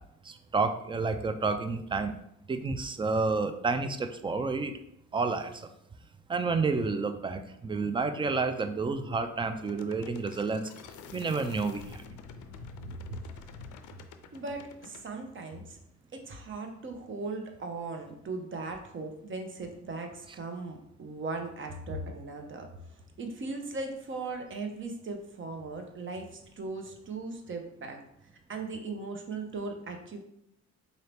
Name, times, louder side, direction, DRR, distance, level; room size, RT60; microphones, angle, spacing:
voice 1, 0.3-2.1 2.5-4.7 5.1-5.6 6.3-10.6 11.1-11.8, right 4 dB, 15° right, 8 dB, 0.3 m, -30 dB
sound 1, 9.6-15.0, left 5 dB, 80° left, 0.5 m, -48 dB
voice 2, 14.3-15.8 16.1-22.7 23.2-28.0 28.5-30.2, right 3 dB, 40° right, 4 dB, 0.8 m, -38 dB
3.9 x 2.7 x 3.4 m, 0.76 s
cardioid pair, 90°, 30 cm